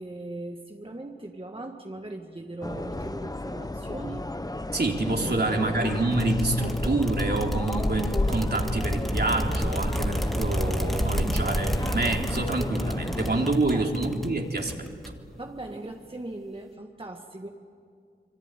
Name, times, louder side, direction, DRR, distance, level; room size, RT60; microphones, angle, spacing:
voice 1, 0.0-4.3 5.2-6.0 13.4-14.1 15.4-17.5, right 2 dB, 25° right, 2 dB, 1.8 m, -39 dB
sound 1, 2.6-13.5, left 2 dB, 20° left, 1.0 m, -33 dB
voice 2, 4.7-14.7, right 2 dB, 55° right, 1 dB, 3.5 m, -27 dB
sound 2, 6.1-15.3, equal, ahead, 1.9 m, -30 dB
26.0 x 24.0 x 9.1 m, 2.2 s
cardioid pair, 45°, 20 cm